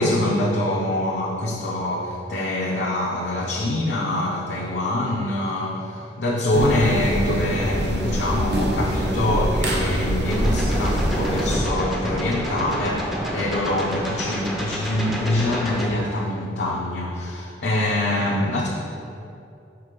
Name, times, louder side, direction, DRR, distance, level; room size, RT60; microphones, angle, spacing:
voice 1, 0.0-18.7, left 1 dB, 65° left, -4 dB, 0.7 m, -24 dB
sound 1, 6.5-11.6, equal, 70° right, 1.0 m, -24 dB
sound 2, 10.2-15.9, equal, ahead, 0.6 m, -29 dB
6.0 x 3.9 x 5.1 m, 2.7 s
head